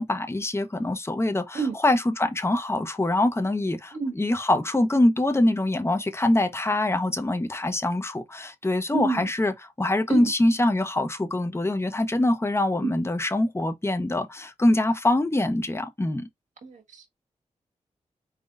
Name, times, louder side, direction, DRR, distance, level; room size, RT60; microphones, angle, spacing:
voice 1, 0.0-16.3, left 1 dB, 20° left, 1.1 m, -24 dB
voice 2, 8.9-9.2 10.1-10.3 12.8-12.9 16.6-17.1, right 4 dB, 75° right, 1.7 m, -28 dB
4.7 x 4.1 x 2.5 m
cardioid pair, 55°, 13 cm